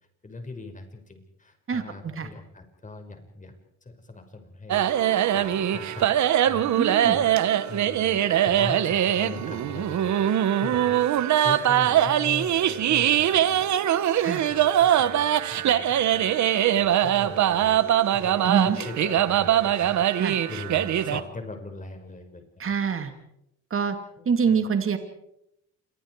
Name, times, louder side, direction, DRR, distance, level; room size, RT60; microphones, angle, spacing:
voice 1, 0.2-4.8 5.3-6.2 6.5-7.3 7.7-10.2 10.6-11.1 11.4-13.7 14.5-17.8 18.1-22.6 24.2-24.6, left 2 dB, 25° left, 6 dB, 5.4 m, -40 dB
voice 2, 1.7-2.3 6.8-7.2 14.2-14.4 18.4-18.8 20.2-20.4 22.6-23.1 23.7-24.0 24.2-25.0, right 6 dB, 45° right, 7 dB, 2.6 m, -25 dB
sound 1, 4.7-21.2, right 11 dB, 70° right, 1.2 m, -22 dB
Telephone, 15.1-17.6 18.4-20.8, left 6 dB, 45° left, 2.3 m, -46 dB
28.5 x 24.0 x 4.8 m, 0.82 s
cardioid pair, 90°, 30 cm